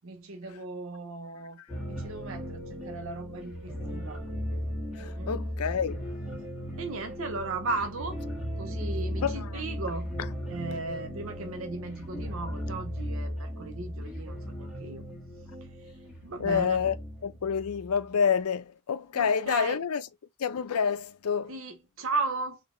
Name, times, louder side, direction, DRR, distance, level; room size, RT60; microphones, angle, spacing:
voice 1, 0.0-1.6 1.9-4.2 5.0-5.3 6.8-8.2 8.6-10.1 10.5-15.0 16.2-16.8 19.1-19.8 21.5-22.6, right 3 dB, 60° right, 0.6 m, -36 dB
sound 1, 1.7-18.0, equal, 5° right, 1.5 m, -37 dB
voice 2, 5.0-6.0 9.2-9.6 16.4-17.0 17.2-20.0 20.4-21.6, left 6 dB, 90° left, 0.5 m, -28 dB
4.1 x 3.4 x 3.0 m
head